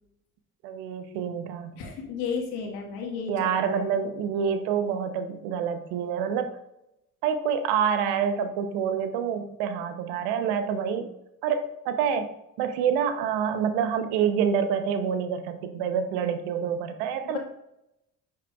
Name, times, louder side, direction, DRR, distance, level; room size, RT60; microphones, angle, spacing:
voice 1, 0.6-1.8 3.3-6.5 7.2-11.1 11.4-12.3 12.6-17.4, right 7 dB, 70° right, 9 dB, 0.9 m, -27 dB
voice 2, 1.8-3.8 17.2-17.4, left 6 dB, 70° left, 2 dB, 1.6 m, -33 dB
9.9 x 5.8 x 2.4 m, 0.87 s
hypercardioid pair, 55°, 40 cm